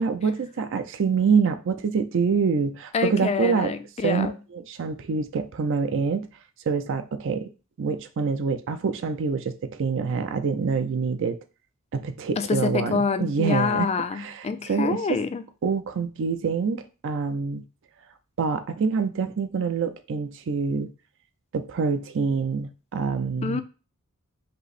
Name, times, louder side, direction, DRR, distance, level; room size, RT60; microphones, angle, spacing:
voice 1, 0.0-3.7 4.0-6.3 6.7-7.5 7.8-11.4 11.9-13.9 14.1-15.2 15.6-17.7 18.4-20.9 21.5-23.6, right 5 dB, 60° right, 0.4 m, -26 dB
voice 2, 2.9-4.3 12.4-15.4 23.4-23.6, left 5 dB, 30° left, 0.3 m, -26 dB
5.3 x 2.0 x 4.1 m
head